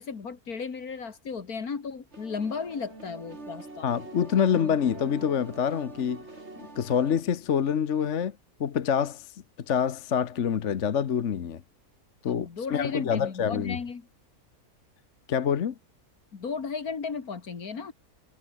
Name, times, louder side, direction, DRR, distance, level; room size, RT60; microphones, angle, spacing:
voice 1, 0.0-3.9 4.4-4.8 12.3-14.1 16.3-17.9, left 5 dB, 75° left, 2.6 m, -35 dB
sound 1, 2.1-7.2, right 2 dB, 45° right, 4.1 m, -44 dB
voice 2, 3.8-6.2 6.6-8.3 8.6-9.3 9.7-11.6 12.2-13.8 15.3-15.7, left 8 dB, 55° left, 1.3 m, -26 dB
omnidirectional pair, 1.6 m